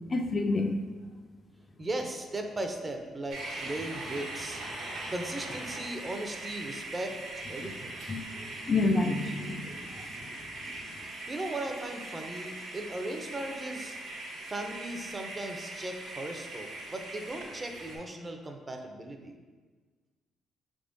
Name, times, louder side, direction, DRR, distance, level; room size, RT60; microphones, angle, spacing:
voice 1, 0.1-0.8 8.1-10.0, left 3 dB, 40° left, 4 dB, 0.3 m, -29 dB
voice 2, 1.8-4.6 5.1-8.0 11.3-14.0 14.5-19.4, right 1 dB, 25° right, 4 dB, 0.5 m, -37 dB
sound 1, 3.3-18.0, right 2 dB, 85° right, 1.0 m, -41 dB
4.8 x 3.5 x 2.6 m, 1.4 s
cardioid pair, 90°, 0 cm